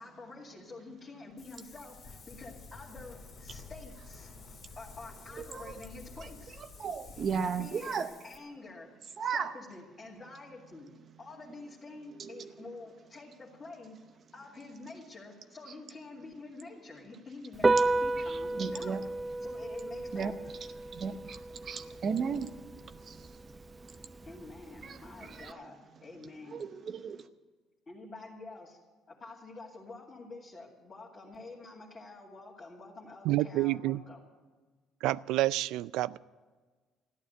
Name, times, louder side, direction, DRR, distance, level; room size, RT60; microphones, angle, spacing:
voice 1, 0.0-4.3 4.8-6.6 7.6-8.9 9.2-10.9 11.2-14.0 14.3-19.0 19.4-20.3 24.2-26.6 27.9-28.8 29.1-34.3, left 3 dB, 20° left, -5 dB, 2.4 m, -48 dB
Wind, 1.4-8.4, left 4 dB, 45° left, 2.5 m, -50 dB
voice 2, 6.8-8.1 9.2-9.5 12.2-12.3 18.6-19.0 20.1-20.3 20.9-22.5 23.1-23.2 24.8-25.0 26.5-27.2, right 6 dB, 35° right, 10 dB, 0.7 m, -34 dB
Piano, 17.5-25.5, right 2 dB, 15° right, 0.4 m, -33 dB
voice 3, 33.3-34.0 35.0-36.2, right 16 dB, 80° right, 19 dB, 0.4 m, -28 dB
14.0 x 11.5 x 7.9 m, 1.3 s
cardioid pair, 145°, 0 cm